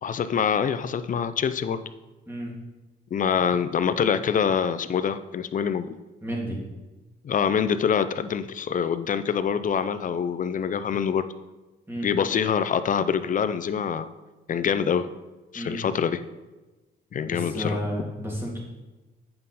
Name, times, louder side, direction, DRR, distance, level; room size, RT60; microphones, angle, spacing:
voice 1, 0.0-1.8 3.1-6.0 7.2-11.3 12.0-14.1 14.5-15.1 15.5-16.2 17.1-17.8, left 7 dB, 40° left, 12 dB, 0.5 m, -25 dB
voice 2, 6.2-6.6 11.9-12.1 15.5-15.8 17.2-18.6, equal, 10° right, -3 dB, 2.6 m, -31 dB
8.7 x 5.4 x 4.2 m, 1.1 s
cardioid pair, 90°, 20 cm